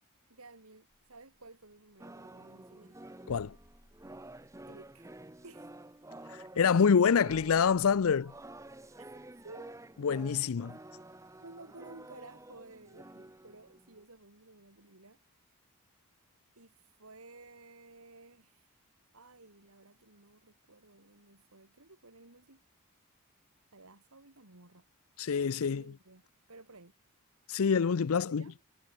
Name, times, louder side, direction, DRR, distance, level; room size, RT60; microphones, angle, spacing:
voice 1, 0.3-3.0 4.7-5.1 5.4-5.7 9.4-9.8 11.4-15.2 16.6-18.8 19.1-22.6 23.7-24.9 25.6-26.2 26.5-26.9 28.1-28.6, right 2 dB, 75° right, 3.7 m, -54 dB
Basspad (Desolate), 0.9-14.3, equal, 30° left, 4.8 m, -63 dB
sound 1, 2.0-14.0, right 1 dB, 15° right, 0.9 m, -51 dB
voice 2, 6.3-8.3 10.0-10.8 25.2-25.8 27.5-28.4, left 6 dB, 70° left, 0.5 m, -26 dB
head